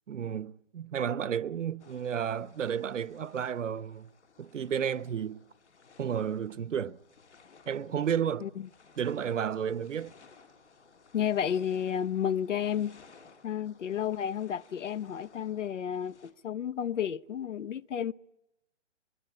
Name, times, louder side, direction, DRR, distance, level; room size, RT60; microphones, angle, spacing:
voice 1, 0.1-4.1 4.4-5.4 6.0-7.0 7.7-8.5 9.0-10.1, right 8 dB, 90° right, 0.9 m, -32 dB
sound 1, 1.8-16.3, left 5 dB, 70° left, 3.5 m, -59 dB
voice 2, 11.1-13.0 13.4-18.1, left 9 dB, 90° left, 0.8 m, -32 dB
23.0 x 22.5 x 8.7 m
hypercardioid pair, 175°, 36 cm